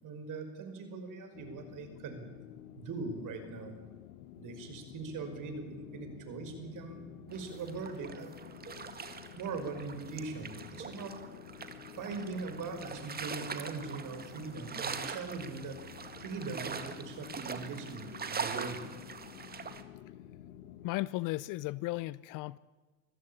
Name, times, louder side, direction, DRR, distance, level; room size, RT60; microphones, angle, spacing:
voice 1, 0.0-2.3 2.8-3.7 4.4-8.4 8.6-8.7 9.1-11.2 12.0-15.7 16.2-18.8, right 4 dB, 45° right, 7 dB, 5.7 m, -41 dB
sound 1, 1.3-20.9, left 12 dB, 70° left, 1.2 m, -51 dB
sound 2, 7.3-19.8, right 5 dB, 20° right, 1.9 m, -43 dB
voice 2, 20.8-22.6, left 19 dB, 45° left, 21 dB, 0.6 m, -35 dB
25.0 x 15.5 x 8.8 m, 1.3 s
hypercardioid pair, 85°, 43 cm